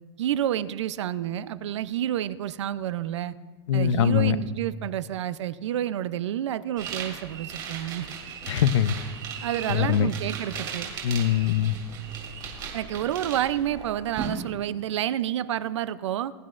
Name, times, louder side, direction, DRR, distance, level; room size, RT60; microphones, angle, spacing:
voice 1, 0.2-3.3 3.7-8.1 9.4-10.9 12.7-16.3, right 11 dB, 80° right, 15 dB, 0.6 m, -29 dB
voice 2, 3.7-4.4 8.5-8.9 9.7-10.1 11.0-11.7, left 10 dB, 85° left, 14 dB, 0.7 m, -22 dB
sound 1, 6.8-14.3, right 7 dB, 30° right, 3.0 m, -37 dB
21.5 x 10.5 x 2.5 m, 1.4 s
supercardioid pair, 155°, 15 cm